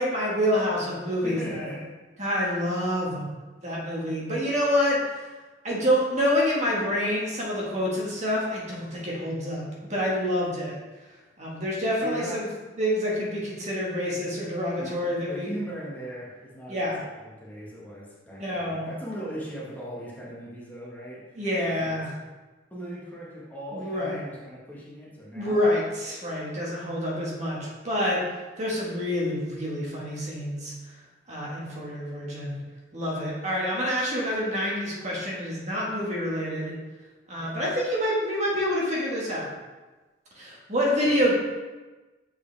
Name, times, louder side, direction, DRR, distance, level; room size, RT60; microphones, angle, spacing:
voice 1, 0.0-1.4 2.2-3.2 3.6-5.3 5.6-10.7 11.4-12.5 12.8-15.5 16.7-17.0 18.3-18.9 21.4-22.1 23.7-24.2 25.3-28.2 28.6-30.7 31.3-32.6 32.9-36.7 37.3-39.5 40.3-41.3, equal, 40° right, -5 dB, 1.5 m, -27 dB
voice 2, 1.2-1.9 12.0-12.4 14.8-15.0 15.3-21.4 21.8-22.0 22.7-25.6 37.4-37.7, right 1 dB, 10° left, -6 dB, 1.4 m, -38 dB
7.1 x 4.8 x 3.4 m, 1.2 s
head